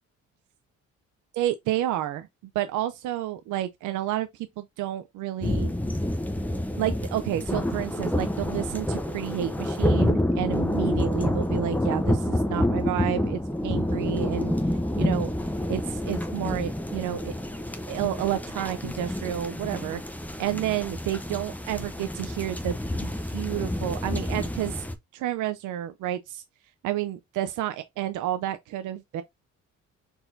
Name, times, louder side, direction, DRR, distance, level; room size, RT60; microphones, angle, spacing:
voice 1, 1.3-2.3 2.5-5.7 6.8-15.3 15.7-17.3 17.9-20.0 20.4-22.7 23.0-24.8 25.1-26.4 26.8-29.2, right 12 dB, 85° right, 0.5 m, -30 dB
sound 1, 5.4-24.9, left 1 dB, 5° left, 0.7 m, -28 dB
4.5 x 4.0 x 2.6 m
cardioid pair, 90°, 30 cm